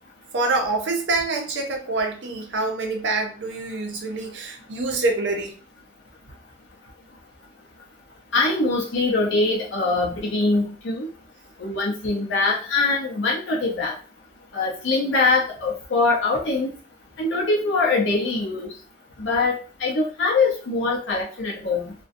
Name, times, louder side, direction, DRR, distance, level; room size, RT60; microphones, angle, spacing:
voice 1, 0.3-5.5, right 3 dB, 80° right, 0.5 m, -26 dB
voice 2, 8.3-11.1 11.6-13.9 14.5-16.7 17.2-18.7 19.2-21.9, left 3 dB, 80° left, 0.5 m, -23 dB
2.4 x 2.1 x 2.5 m
head